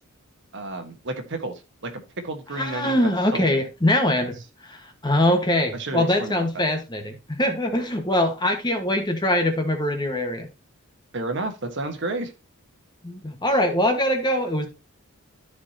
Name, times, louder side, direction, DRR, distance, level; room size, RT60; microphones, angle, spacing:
voice 1, 0.5-3.6 4.2-4.3 5.7-6.7 11.1-12.3, right 2 dB, 60° right, 1.4 m, -31 dB
voice 2, 2.5-4.4 4.7-10.5 13.0-14.7, left 1 dB, 20° left, 1.5 m, -23 dB
13.0 x 5.1 x 2.9 m
head